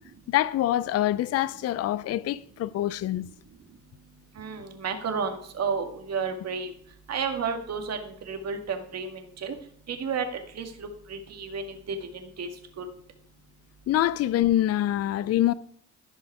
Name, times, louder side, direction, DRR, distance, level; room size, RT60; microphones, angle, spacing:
voice 1, 0.3-3.3 13.9-15.5, left 13 dB, 55° left, 0.4 m, -25 dB
voice 2, 4.4-6.7 7.1-9.6 9.9-10.3 10.6-12.5 12.8-12.9, right 5 dB, 55° right, 2.0 m, -32 dB
14.0 x 5.4 x 4.8 m
cardioid pair, 90°, 30 cm